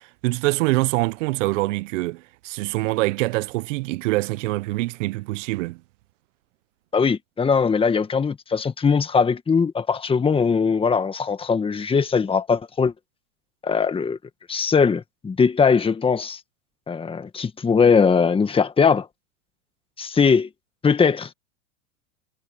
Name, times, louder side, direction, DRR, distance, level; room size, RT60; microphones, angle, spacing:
voice 1, 0.0-5.8, right 21 dB, 55° right, 1.0 m, -24 dB
voice 2, 6.9-12.9 13.6-14.2 14.5-16.4 16.9-19.1 20.0-20.5 20.8-21.3, left 5 dB, 10° left, 1.7 m, -20 dB
hypercardioid pair, 120°, 44 cm